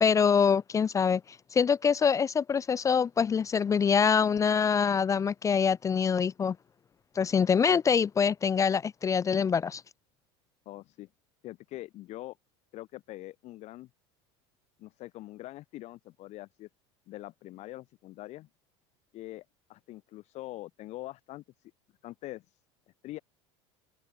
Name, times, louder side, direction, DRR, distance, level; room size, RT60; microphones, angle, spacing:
voice 1, 0.0-1.2 1.5-6.6 7.2-9.8, left 6 dB, 20° left, 0.6 m, -25 dB
voice 2, 10.6-11.1 11.4-12.4 12.7-13.9 14.8-16.7 17.1-18.5 19.1-21.7 22.0-22.6 23.0-23.2, left 16 dB, 55° left, 5.0 m, -44 dB
open air
supercardioid pair, 120°, 14 cm